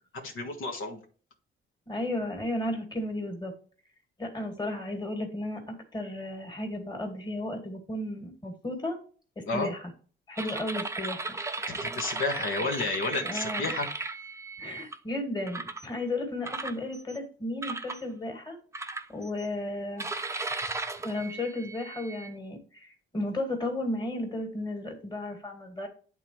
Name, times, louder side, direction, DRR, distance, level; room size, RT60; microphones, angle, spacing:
voice 1, 0.1-1.0 9.4-9.7 11.7-13.9, left 3 dB, 75° left, 2 dB, 1.7 m, -31 dB
voice 2, 1.9-3.5 4.2-9.0 9.4-9.8 10.3-11.4 13.2-13.7 14.6-18.6 19.1-20.1 21.0-25.9, left 1 dB, 20° left, 3 dB, 2.3 m, -34 dB
sound 1, 10.4-14.9 15.5-15.9 16.4-17.2 17.6-18.0 18.7-19.5 20.0-22.3, right 3 dB, 15° right, 0.6 m, -36 dB
11.0 x 4.0 x 3.1 m, 0.40 s
cardioid pair, 115°, 21 cm